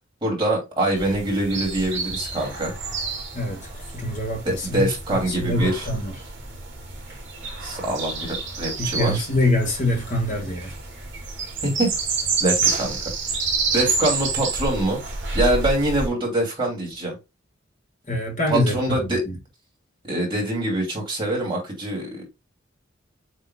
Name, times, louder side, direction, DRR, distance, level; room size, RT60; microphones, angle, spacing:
voice 1, 0.2-2.7 4.4-5.9 7.6-9.3 11.6-11.9 12.4-13.0 13.7-15.0 15.3-17.2 18.5-19.3 20.0-22.2, right 1 dB, 25° right, 2.7 m, -24 dB
sound 1, 0.9-16.1, right 4 dB, 55° right, 2.6 m, -29 dB
voice 2, 3.9-6.1 8.8-10.7 18.1-18.7 19.1-19.3, left 1 dB, 40° left, 1.6 m, -24 dB
7.6 x 3.1 x 2.3 m
head